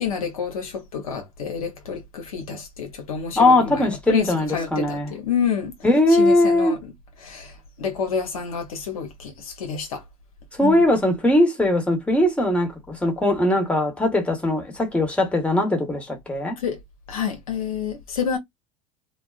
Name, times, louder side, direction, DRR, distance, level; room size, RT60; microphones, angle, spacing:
voice 1, 0.0-5.7 6.1-6.8 7.2-7.5 7.8-10.0 10.6-10.8 16.6-16.8 17.1-18.4, left 7 dB, 85° left, 0.8 m, -28 dB
voice 2, 3.3-5.1 5.8-6.8 10.5-16.6, left 1 dB, 5° left, 1.0 m, -20 dB
2.4 x 2.2 x 2.3 m
hypercardioid pair, 75°, 18 cm